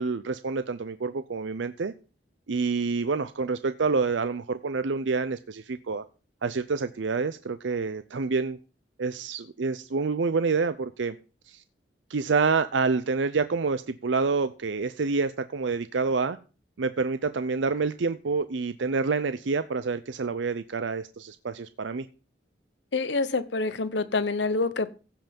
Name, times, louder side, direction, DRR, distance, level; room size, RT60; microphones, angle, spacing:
voice 1, 0.0-1.9 2.5-6.0 6.4-8.6 9.0-11.2 11.5-11.6 12.1-16.4 16.8-22.1, right 4 dB, 85° right, 0.6 m, -27 dB
voice 2, 22.9-24.9, left 3 dB, 70° left, 0.9 m, -27 dB
15.5 x 5.7 x 5.2 m
head